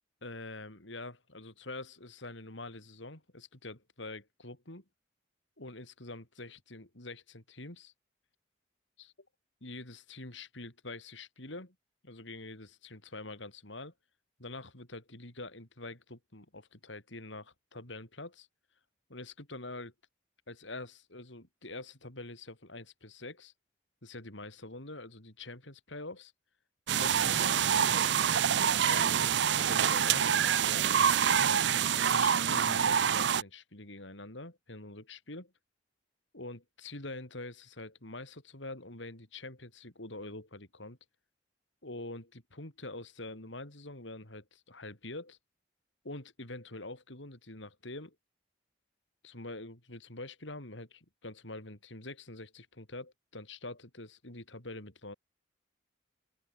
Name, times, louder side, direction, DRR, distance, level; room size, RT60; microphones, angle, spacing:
voice 1, 0.2-4.8 5.6-7.9 9.6-11.7 12.0-13.9 14.4-18.5 19.1-19.9 20.5-23.5 24.0-26.3 26.9-28.1 28.8-31.6 32.1-35.5 36.3-41.0 41.8-45.4 46.0-48.2 49.2-55.1, left 2 dB, 75° left, 4.4 m, -45 dB
sound 1, 26.9-33.4, right 8 dB, 65° right, 0.5 m, -26 dB
open air
head